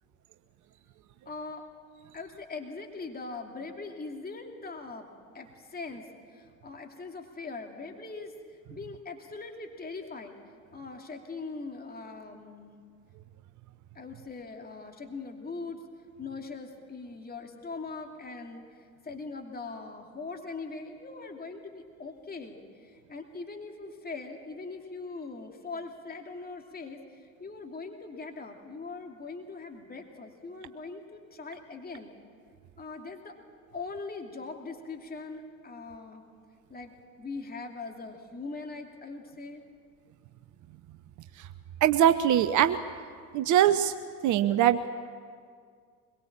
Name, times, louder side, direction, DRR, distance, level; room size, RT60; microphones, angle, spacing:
voice 1, 1.3-1.6 2.1-5.1 5.3-8.4 8.7-10.4 10.7-12.7 13.9-15.8 16.2-32.1 32.8-33.4 33.7-36.2 36.7-36.9 37.2-39.6, left 3 dB, 20° left, 3 dB, 2.8 m, -41 dB
voice 2, 41.8-42.8 43.3-43.9 44.2-44.9, right 11 dB, 45° right, 12 dB, 0.9 m, -22 dB
24.0 x 22.0 x 7.5 m, 2.1 s
figure-of-eight pair, 55°, 43 cm